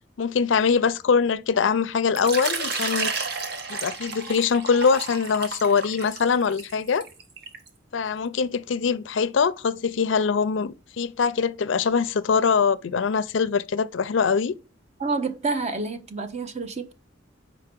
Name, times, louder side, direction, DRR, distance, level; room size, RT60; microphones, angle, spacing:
voice 1, 0.2-3.1 3.7-7.1 7.9-14.5, left 5 dB, 75° left, 0.4 m, -23 dB
Water / Liquid, 2.2-7.7, right 4 dB, 55° right, 1.1 m, -32 dB
voice 2, 15.0-16.9, right 3 dB, 35° right, 0.8 m, -28 dB
5.2 x 4.5 x 5.1 m
head